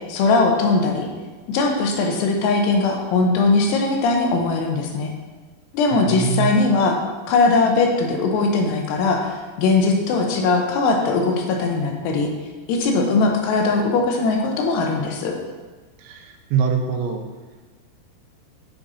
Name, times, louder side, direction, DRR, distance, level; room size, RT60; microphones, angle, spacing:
voice 1, 0.1-1.1 1.5-5.1 5.7-7.0 7.3-12.3 12.7-15.4, left 3 dB, 80° left, 2 dB, 2.7 m, -20 dB
voice 2, 5.9-6.5 16.0-17.3, right 7 dB, 85° right, 4 dB, 2.9 m, -24 dB
8.8 x 3.8 x 4.0 m, 1.3 s
omnidirectional pair, 5.0 m